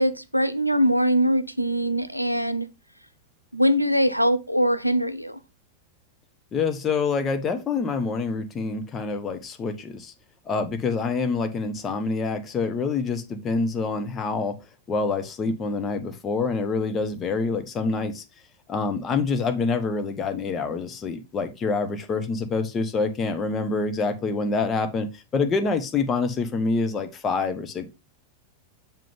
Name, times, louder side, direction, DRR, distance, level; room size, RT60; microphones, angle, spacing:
voice 1, 0.0-2.7 3.5-5.4, equal, 90° right, 0.6 m, -22 dB
voice 2, 6.5-10.1 10.5-14.5 14.9-18.2 18.7-27.9, left 4 dB, 25° left, 1.2 m, -26 dB
7.3 x 5.2 x 3.6 m
figure-of-eight pair, 90°, 0 cm